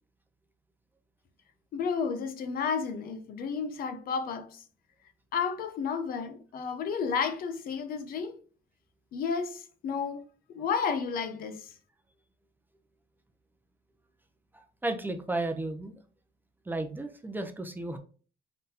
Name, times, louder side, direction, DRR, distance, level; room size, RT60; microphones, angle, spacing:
voice 1, 1.7-4.6 5.3-8.4 9.1-10.2 10.5-11.7, left 6 dB, 60° left, 0.7 m, -32 dB
voice 2, 14.5-16.0 16.7-18.0, right 2 dB, 10° right, 0.6 m, -34 dB
3.9 x 3.7 x 2.8 m
cardioid pair, 110°, 17 cm